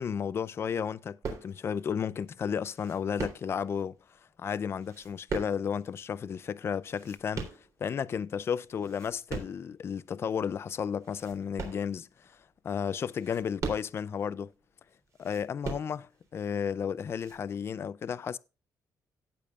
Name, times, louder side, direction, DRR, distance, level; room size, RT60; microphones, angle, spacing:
voice 1, 0.0-4.0 4.4-7.5 7.8-12.3 12.6-14.5 15.2-18.4, left 7 dB, 35° left, 0.4 m, -33 dB
sound 1, 1.2-1.8 2.7-3.8 4.7-5.9 6.7-8.1 8.6-9.7 10.2-10.3 11.0-12.3 13.0-14.2 15.1-16.3 17.1-17.4, right 4 dB, 50° right, 3.4 m, -39 dB
17.0 x 6.9 x 2.4 m
cardioid pair, 170°, 7 cm